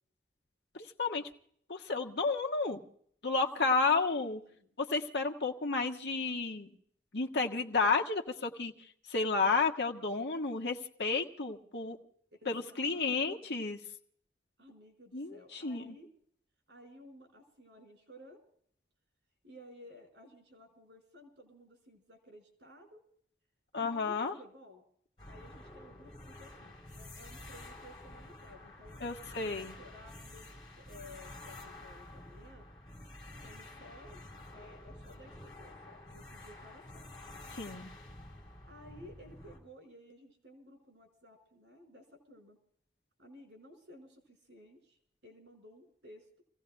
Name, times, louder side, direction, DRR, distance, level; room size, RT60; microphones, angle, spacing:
voice 1, 0.7-1.3 1.7-2.8 3.2-4.4 4.8-6.7 7.1-12.0 12.4-13.8 15.1-15.9 23.7-24.4 29.0-29.8 37.5-37.9, left 4 dB, 75° left, 3 dB, 1.5 m, -32 dB
voice 2, 3.3-4.3 4.6-4.7 12.3-13.5 14.6-16.1 16.7-18.4 19.4-23.0 23.7-24.8 25.2-29.0 29.4-32.6 33.2-37.3 38.7-42.6 43.2-46.4, left 1 dB, 85° right, 4 dB, 5.6 m, -55 dB
sound 1, 25.2-39.6, left 1 dB, 25° left, 4.9 m, -50 dB
29.5 x 17.0 x 2.3 m, 0.64 s
head